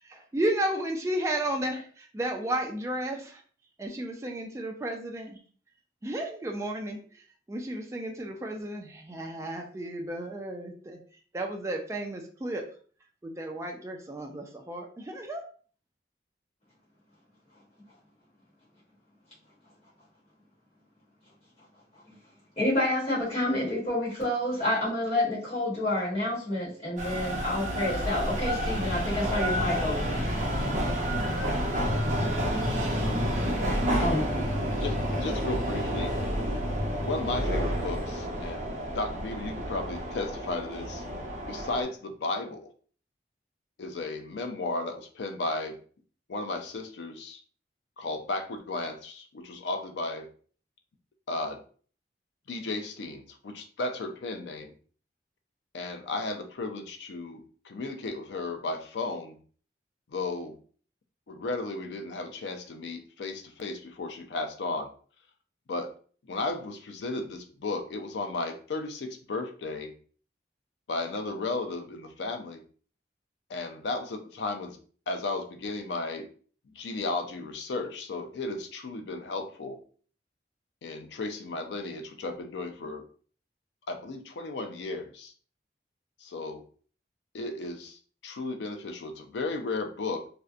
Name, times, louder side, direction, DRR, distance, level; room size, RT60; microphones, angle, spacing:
voice 1, 0.1-1.8 2.1-3.4 3.8-5.4 6.0-7.2 7.5-11.0 11.3-12.6 13.2-15.4, right 1 dB, 15° right, 2 dB, 0.3 m, -33 dB
voice 2, 22.6-30.3 34.0-34.3, left 1 dB, 35° left, -8 dB, 1.0 m, -28 dB
sound 1, 27.0-41.8, equal, 45° right, 0.7 m, -29 dB
voice 3, 34.8-36.1 36.9-42.7 43.8-45.8 46.3-47.4 48.0-50.3 51.3-51.6 52.5-54.7 55.7-59.4 60.1-60.6 61.3-64.9 65.7-65.9 66.2-69.9 70.9-72.6 73.5-74.8 75.1-76.3 76.7-79.8 80.8-83.0 83.9-85.3 86.2-86.6 87.3-90.3, left 3 dB, 75° left, 6 dB, 0.4 m, -34 dB
2.7 x 2.1 x 2.4 m, 0.43 s
head